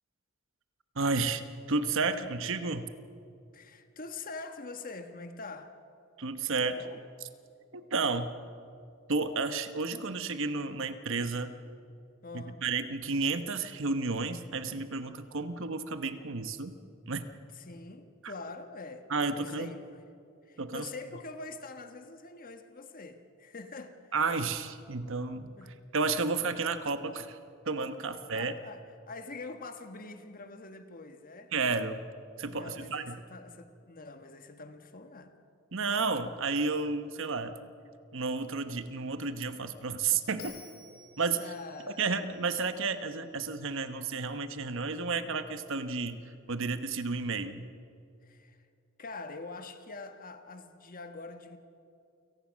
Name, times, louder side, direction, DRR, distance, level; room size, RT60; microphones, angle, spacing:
voice 1, 0.9-1.4 1.7-2.9 6.2-6.8 7.7-8.3 9.1-11.5 12.3-16.8 17.1-17.3 19.1-19.7 20.6-20.8 24.1-25.5 25.9-27.4 27.6-28.5 31.5-32.0 32.4-33.2 35.7-37.6 38.1-40.5 41.2-41.5 42.0-46.2 46.5-47.7, right 4 dB, 65° right, 10 dB, 1.1 m, -31 dB
voice 2, 3.5-5.7 6.7-7.0 12.2-12.6 17.4-19.8 20.4-24.1 25.6-25.7 28.3-31.5 32.5-35.4 41.3-42.1 48.2-48.7 49.0-51.6, left 3 dB, 45° left, 7 dB, 1.4 m, -44 dB
Bell, 40.4-43.6, left 4 dB, 75° left, 5.0 m, -53 dB
29.0 x 18.0 x 6.4 m, 2.5 s
head